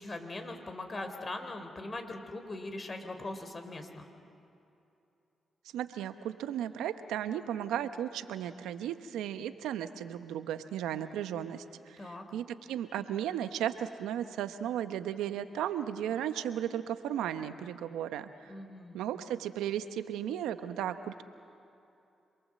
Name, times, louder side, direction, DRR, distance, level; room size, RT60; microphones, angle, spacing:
voice 1, 0.0-4.0 12.0-12.2 18.5-19.0, left 2 dB, 40° left, 6 dB, 3.5 m, -41 dB
voice 2, 5.7-18.5 18.9-21.2, right 10 dB, 85° right, 10 dB, 1.0 m, -35 dB
27.0 x 22.5 x 7.6 m, 2.8 s
supercardioid pair, 45°, 0 cm